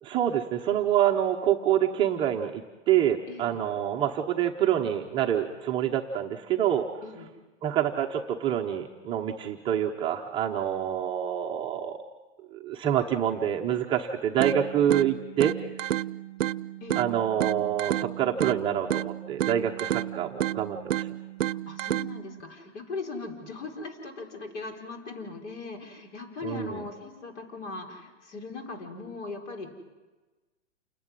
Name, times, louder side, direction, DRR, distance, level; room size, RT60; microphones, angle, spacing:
voice 1, 0.0-2.6 2.9-6.9 7.6-12.0 12.5-15.5 17.0-21.1 26.4-26.8, right 10 dB, 15° right, 1 dB, 0.7 m, -26 dB
voice 2, 3.3-3.6 7.0-7.3 16.8-17.0 21.4-29.7, left 3 dB, 65° left, 3 dB, 4.7 m, -39 dB
sound 1, 14.4-22.4, right 13 dB, 85° right, 0.7 m, -31 dB
28.0 x 11.5 x 9.7 m, 1.2 s
hypercardioid pair, 155°, 38 cm